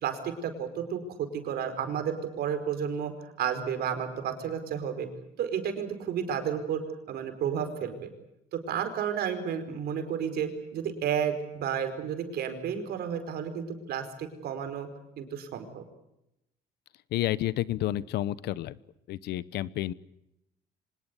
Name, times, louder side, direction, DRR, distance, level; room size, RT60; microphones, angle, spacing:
voice 1, 0.0-3.1 3.4-5.1 5.4-6.8 7.1-8.1 8.5-14.9 15.2-15.8, right 8 dB, 70° right, 7 dB, 4.9 m, -32 dB
voice 2, 17.1-18.8 19.1-19.9, left 14 dB, 75° left, 18 dB, 1.0 m, -30 dB
25.0 x 20.0 x 8.3 m, 0.86 s
cardioid pair, 110°, 17 cm